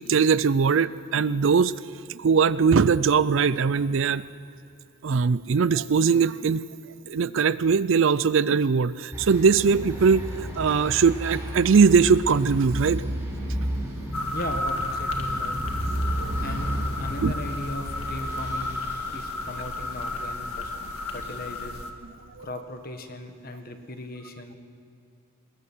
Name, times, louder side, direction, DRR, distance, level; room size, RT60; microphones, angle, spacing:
voice 1, 0.1-1.7 2.1-4.2 5.0-6.6 7.1-13.0 16.2-16.4 17.2-17.3 22.4-22.5, right 5 dB, 60° right, 17 dB, 0.4 m, -21 dB
sound 1, 9.1-21.4, equal, 10° right, 5.9 m, -33 dB
sound 2, 14.1-21.9, left 2 dB, 80° left, 1.7 m, -32 dB
voice 2, 14.3-15.6 16.4-18.8 19.1-20.7 21.1-21.8 22.4-24.5, left 1 dB, 40° left, 6 dB, 1.5 m, -37 dB
21.5 x 20.5 x 6.2 m, 2.6 s
head